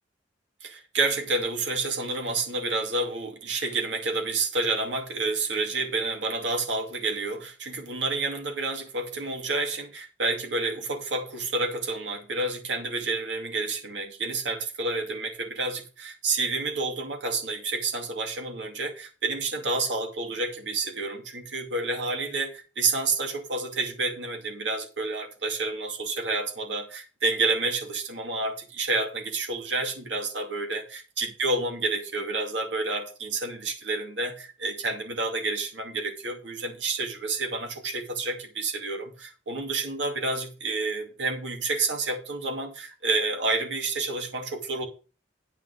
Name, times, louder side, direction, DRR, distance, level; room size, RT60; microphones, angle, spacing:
voice 1, 0.6-44.9, right 3 dB, 85° right, 2.4 m, -29 dB
9.4 x 5.6 x 6.5 m
head